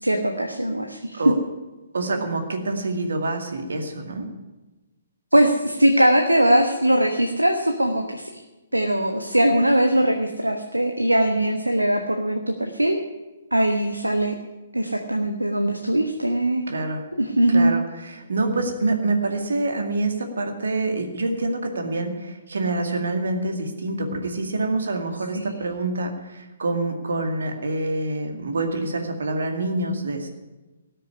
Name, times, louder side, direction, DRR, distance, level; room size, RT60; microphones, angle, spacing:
voice 1, 0.0-1.2 5.3-8.3 8.7-13.0 13.5-14.3 14.7-16.6 17.2-17.7 25.3-25.5, right 1 dB, 85° right, 4 dB, 1.3 m, -21 dB
voice 2, 1.9-4.3 16.7-17.0 17.5-30.3, right 2 dB, 65° right, 5 dB, 2.2 m, -26 dB
18.0 x 6.8 x 9.8 m, 1.1 s
figure-of-eight pair, 130°, 0 cm